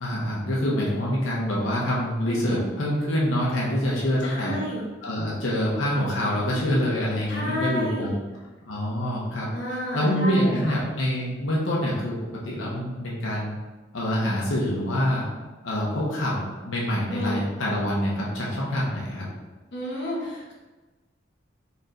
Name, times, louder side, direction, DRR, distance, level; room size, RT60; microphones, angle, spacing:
voice 1, 0.0-4.6 5.0-8.1 8.7-12.2 12.4-13.6 13.9-15.3 15.6-19.3, equal, 90° left, -5 dB, 0.9 m, -26 dB
voice 2, 2.3-2.6 4.2-4.8 7.3-8.2 9.5-10.8 17.1-17.4 19.7-20.5, left 1 dB, 65° left, -4 dB, 1.0 m, -30 dB
4.2 x 3.2 x 2.6 m, 1.2 s
head